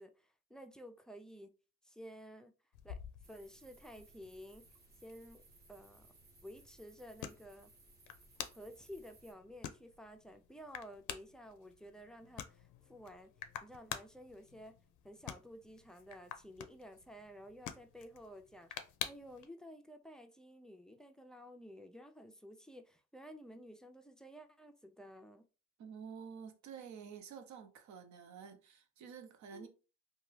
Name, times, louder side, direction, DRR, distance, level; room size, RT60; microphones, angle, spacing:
voice 1, 0.0-1.5 1.8-2.5 2.8-3.0 3.3-4.6 5.0-5.4 5.7-6.1 6.4-7.7 8.5-13.3 13.6-14.7 15.0-25.4 29.5-29.7, equal, ahead, 0.4 m, -53 dB
sound 1, 2.7-19.5, left 10 dB, 85° left, 0.5 m, -50 dB
sound 2, 3.2-9.3, right 3 dB, 35° right, 0.8 m, -63 dB
voice 2, 25.8-29.7, right 7 dB, 70° right, 0.7 m, -50 dB
2.7 x 2.3 x 3.1 m
cardioid pair, 90°, 30 cm